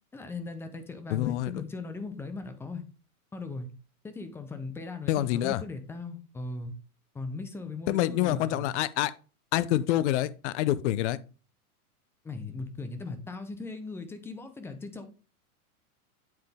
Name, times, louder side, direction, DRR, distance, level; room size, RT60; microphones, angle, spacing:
voice 1, 0.1-2.8 3.3-3.7 4.0-6.7 7.1-8.8 12.2-15.1, left 3 dB, 5° left, 0.4 m, -38 dB
voice 2, 1.1-1.6 5.1-5.6 7.9-9.1 9.5-11.2, left 14 dB, 50° left, 0.6 m, -27 dB
9.1 x 3.8 x 3.5 m
hypercardioid pair, 120°, 44 cm